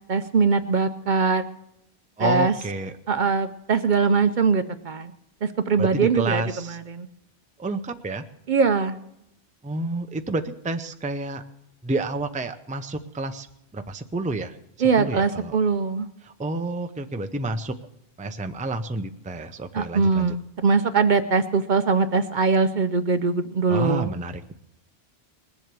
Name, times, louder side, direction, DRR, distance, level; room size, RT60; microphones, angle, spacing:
voice 1, 0.1-1.4 2.2-2.5 3.1-5.1 5.4-6.4 6.7-7.1 8.5-9.0 14.8-16.1 19.7-24.1, right 4 dB, 55° right, 10 dB, 0.7 m, -22 dB
voice 2, 2.2-2.9 5.8-6.8 7.6-8.2 9.6-11.4 11.8-13.5 13.7-14.6 15.0-15.6 16.2-17.7 18.2-20.3 23.7-24.5, right 2 dB, 10° right, 7 dB, 0.5 m, -29 dB
20.5 x 7.7 x 6.8 m, 0.82 s
omnidirectional pair, 1.1 m